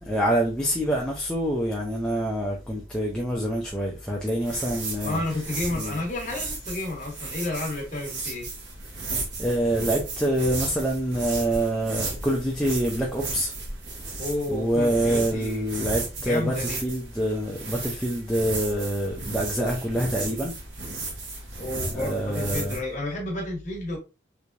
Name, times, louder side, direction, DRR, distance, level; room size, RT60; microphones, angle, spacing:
voice 1, 0.0-5.2 5.7-6.0 8.9-9.1 9.4-13.5 14.5-20.5 21.9-22.8, right 1 dB, 5° left, 0.5 m, -26 dB
sound 1, 4.4-22.8, right 3 dB, 70° right, 1.1 m, -35 dB
voice 2, 5.0-8.5 14.2-15.7 16.2-16.8 21.6-24.0, left 2 dB, 40° left, 1.3 m, -31 dB
3.5 x 3.2 x 2.6 m
head